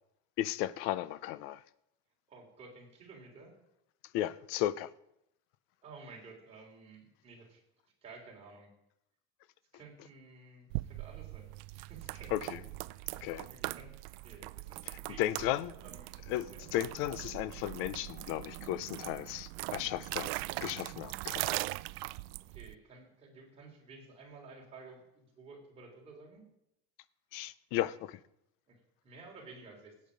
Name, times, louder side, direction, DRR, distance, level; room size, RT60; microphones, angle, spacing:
voice 1, 0.4-1.6 4.1-4.9 12.3-12.6 13.2-13.5 14.9-15.7 16.3-20.3 20.6-21.7 27.3-28.2, left 13 dB, 45° left, 0.5 m, -35 dB
voice 2, 2.3-3.5 5.8-7.6 8.0-8.7 9.7-12.3 12.9-13.9 14.2-16.1 16.5-16.7 22.5-26.4 28.7-28.8 29.0-29.9, right 3 dB, 20° right, 3.1 m, -53 dB
sound 1, 10.7-22.7, right 21 dB, 75° right, 0.5 m, -41 dB
17.0 x 8.5 x 5.1 m
cardioid pair, 180°, 31 cm